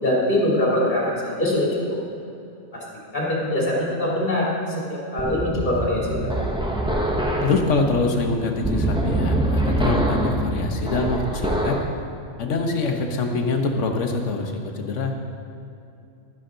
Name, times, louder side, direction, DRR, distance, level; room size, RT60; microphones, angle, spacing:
voice 1, 0.0-1.8 2.7-2.8 3.1-4.5 4.9-6.3, left 1 dB, 35° left, -5 dB, 2.9 m, -23 dB
sound 1, 5.2-11.9, right 1 dB, 5° right, 0.6 m, -24 dB
voice 2, 7.4-11.7 12.4-15.1, left 3 dB, 65° left, 3 dB, 1.4 m, -24 dB
12.0 x 9.9 x 3.9 m, 2.7 s
omnidirectional pair, 1.4 m